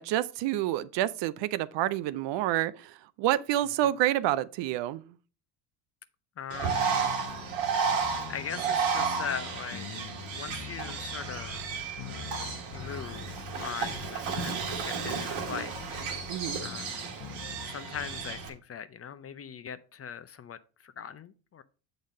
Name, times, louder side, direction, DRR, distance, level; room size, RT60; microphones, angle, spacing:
voice 1, 0.0-5.0 16.3-16.6, right 13 dB, 60° right, 0.6 m, -28 dB
voice 2, 6.4-7.1 7.5-7.9 8.3-11.6 12.6-16.1 16.6-17.1 17.7-21.6, left 7 dB, 30° left, 0.5 m, -40 dB
Bird, 6.5-18.5, right 6 dB, 80° right, 1.8 m, -33 dB
sound 1, 6.7-18.5, left 11 dB, 50° left, 0.9 m, -45 dB
7.0 x 4.0 x 5.1 m
supercardioid pair, 80°, 49 cm